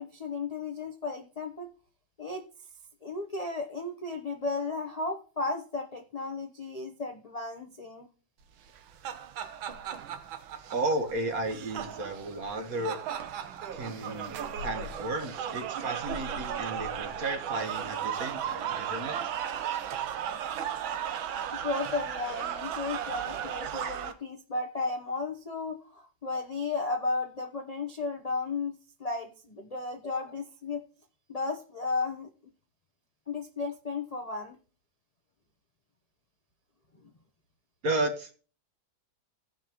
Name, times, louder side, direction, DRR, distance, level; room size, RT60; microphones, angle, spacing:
voice 1, 0.0-1.7 2.2-2.4 3.0-8.1 21.5-30.8 31.3-32.3 33.3-34.6, left 3 dB, 55° left, 3 dB, 0.4 m, -34 dB
sound 1, 8.7-24.1, right 9 dB, 85° right, 1.7 m, -35 dB
voice 2, 10.7-13.0 13.7-19.3 37.8-38.4, right 2 dB, 50° right, 6 dB, 1.6 m, -33 dB
16.5 x 5.9 x 3.0 m, 0.40 s
omnidirectional pair, 2.1 m